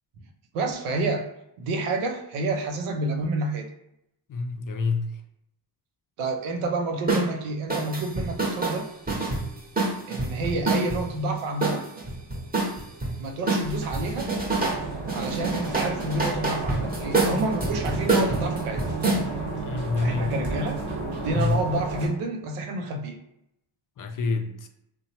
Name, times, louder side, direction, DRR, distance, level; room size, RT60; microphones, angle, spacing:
voice 1, 0.5-1.2 1.6-3.7 6.2-8.9 10.1-11.8 13.2-14.3 15.1-18.8 20.0-20.8 21.2-23.2, right 2 dB, 90° right, 4 dB, 0.6 m, -29 dB
voice 2, 4.3-5.2 19.6-20.4 21.3-21.6 24.0-24.7, left 3 dB, 45° left, 5 dB, 0.4 m, -27 dB
supra beat straight hihat ride, 7.1-7.3 7.7-11.0 11.6-13.1 13.5-14.8 15.1-19.2, right 3 dB, 20° right, 0.8 m, -26 dB
sound 1, 13.6-22.1, right 2 dB, 60° right, 1.1 m, -33 dB
2.8 x 2.2 x 2.8 m, 0.81 s
supercardioid pair, 55°, 49 cm